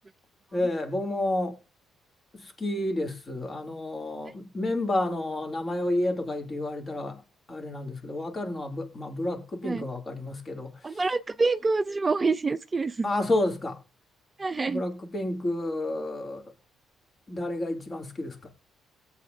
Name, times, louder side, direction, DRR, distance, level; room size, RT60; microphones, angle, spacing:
voice 1, 0.5-1.6 2.3-7.2 7.5-11.0 13.0-13.8 14.7-16.5 17.3-18.5, left 1 dB, 35° left, 2.8 m, -30 dB
voice 2, 10.8-13.1 14.4-14.8, right 3 dB, 25° right, 0.5 m, -26 dB
18.0 x 8.4 x 2.7 m
cardioid pair, 85°, 0 cm